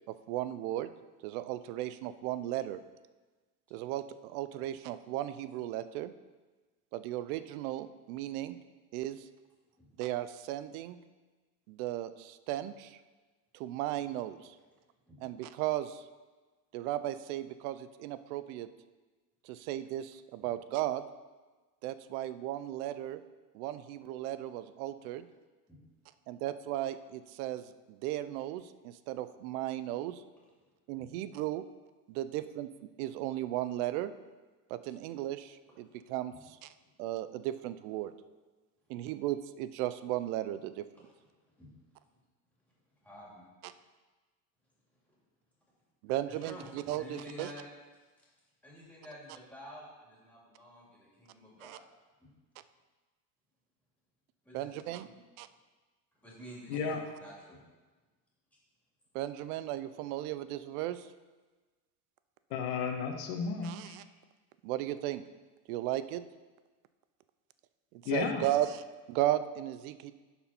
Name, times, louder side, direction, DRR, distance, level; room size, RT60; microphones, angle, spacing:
voice 1, 0.1-0.9 1.2-2.8 3.7-6.1 6.9-8.6 8.9-9.3 10.0-11.0 11.7-13.0 13.5-14.6 15.2-16.0 16.7-18.7 19.4-21.0 21.8-23.2 23.5-25.3 26.3-30.2 30.9-31.6 32.1-32.7 33.0-34.1 34.7-36.7 37.0-38.1 38.9-40.8 46.0-47.5 51.6-51.8 54.5-55.1 55.4-55.5 59.1-61.1 63.6-64.0 64.6-65.2 65.7-66.2 67.9-70.1, right 13 dB, 80° right, 13 dB, 0.6 m, -35 dB
voice 2, 42.9-43.4 45.0-45.2 46.1-47.6 48.0-48.3 48.6-51.8 52.2-52.3 54.4-54.8 55.0-55.1 56.1-57.6, equal, 5° left, -5 dB, 2.5 m, -50 dB
voice 3, 56.7-57.0 62.5-64.0 68.0-68.4, left 5 dB, 75° left, 3 dB, 1.3 m, -33 dB
11.0 x 4.2 x 4.3 m, 1.3 s
cardioid pair, 140°, 43 cm